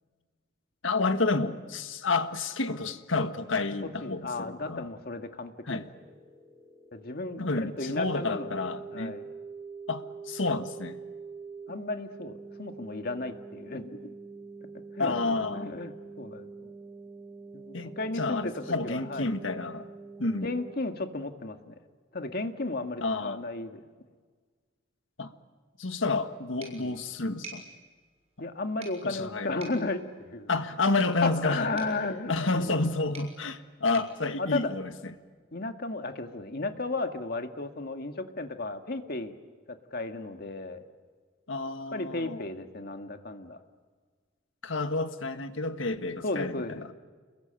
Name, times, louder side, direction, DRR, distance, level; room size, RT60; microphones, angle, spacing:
voice 1, 0.8-4.9 5.6-5.8 7.4-9.2 9.9-11.0 15.0-15.7 17.7-19.9 20.2-20.5 23.0-23.4 25.2-25.3 25.8-27.6 28.4-28.5 29.0-29.6 30.5-31.7 32.3-35.1 41.5-42.4 44.6-46.9, left 3 dB, 80° left, 9 dB, 1.6 m, -30 dB
voice 2, 4.0-5.8 6.9-9.2 11.7-14.1 14.9-16.7 17.5-19.3 20.4-21.8 22.1-23.8 26.6-27.0 28.4-30.5 31.2-32.8 34.4-34.7 35.5-39.4 39.7-40.8 41.9-43.6 46.2-46.8, left 2 dB, 55° left, 6 dB, 1.9 m, -34 dB
sound 1, 5.8-20.8, right 4 dB, 15° right, 1.8 m, -45 dB
sound 2, 26.6-35.3, right 3 dB, 35° right, 6.9 m, -52 dB
29.0 x 22.0 x 9.0 m, 1.5 s
head